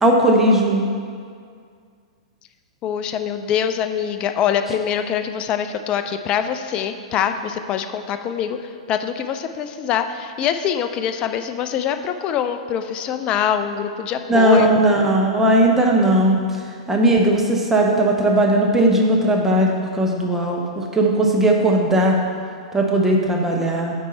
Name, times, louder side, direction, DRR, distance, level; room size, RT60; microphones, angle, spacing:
voice 1, 0.0-0.8 14.3-16.4 16.9-22.1 22.7-23.9, right 1 dB, 10° right, 0 dB, 0.9 m, -17 dB
voice 2, 2.8-8.6 8.9-14.7, left 8 dB, 30° left, 8 dB, 0.4 m, -24 dB
8.3 x 4.5 x 4.4 m, 2.2 s
figure-of-eight pair, 100°, 3 cm